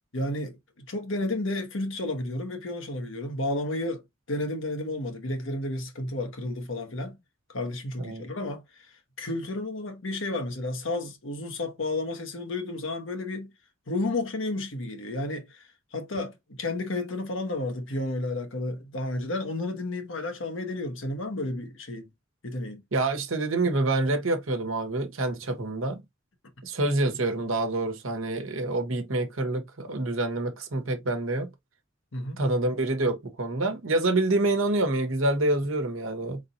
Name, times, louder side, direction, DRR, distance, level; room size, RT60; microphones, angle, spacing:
voice 1, 0.1-0.6 0.9-4.0 4.3-7.2 7.5-8.6 9.2-13.5 13.9-15.7 15.9-22.1 22.4-22.8 32.1-32.4, left 2 dB, 70° left, 1.2 m, -32 dB
voice 2, 22.9-26.0 26.6-31.5 32.4-36.4, right 2 dB, 80° right, 1.1 m, -27 dB
4.1 x 3.6 x 2.5 m
head